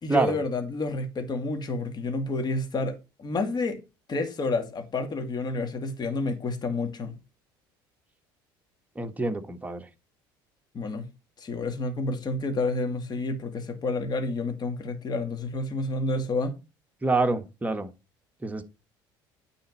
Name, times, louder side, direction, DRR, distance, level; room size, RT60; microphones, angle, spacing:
voice 1, 0.0-3.8 4.1-7.1 10.7-11.1 11.4-16.5, left 2 dB, 40° left, 2.2 m, -29 dB
voice 2, 9.0-9.8 17.0-17.9 18.4-18.6, right 3 dB, 15° right, 1.3 m, -26 dB
9.4 x 4.3 x 5.5 m
hypercardioid pair, 75°, 11 cm